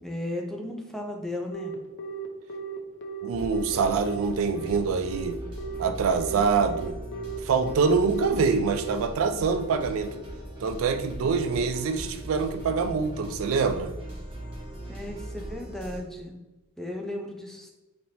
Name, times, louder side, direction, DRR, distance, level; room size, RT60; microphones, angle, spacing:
voice 1, 0.0-1.7 14.9-16.3 16.8-17.7, left 1 dB, ahead, 1 dB, 0.5 m, -35 dB
Telephone, 1.5-8.9, right 5 dB, 60° left, 0.5 m, -36 dB
voice 2, 3.2-5.4 5.8-7.0 7.4-10.2 10.6-13.9, right 5 dB, 70° right, 8 dB, 0.3 m, -25 dB
sound 1, 3.3-16.0, right 1 dB, 25° right, 1.4 m, -39 dB
4.2 x 3.2 x 2.7 m, 1.1 s
head